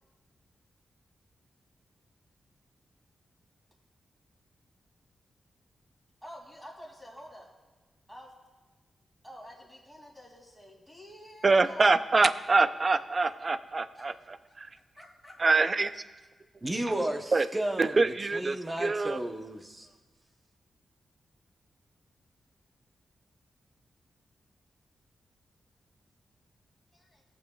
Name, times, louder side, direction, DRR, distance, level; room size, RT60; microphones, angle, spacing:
voice 1, 6.2-7.5 8.1-8.3 9.2-12.2 13.9-15.9 26.9-27.2, equal, ahead, -2 dB, 2.6 m, -49 dB
voice 2, 11.4-14.1 14.6-14.7 15.4-15.9 17.3-17.5 17.8-19.2, right 3 dB, 35° right, 13 dB, 0.4 m, -25 dB
voice 3, 16.6-18.0 18.3-19.9, right 1 dB, 20° right, 4 dB, 0.8 m, -33 dB
18.0 x 7.3 x 2.4 m, 1.3 s
wide cardioid pair, 110°, 0 cm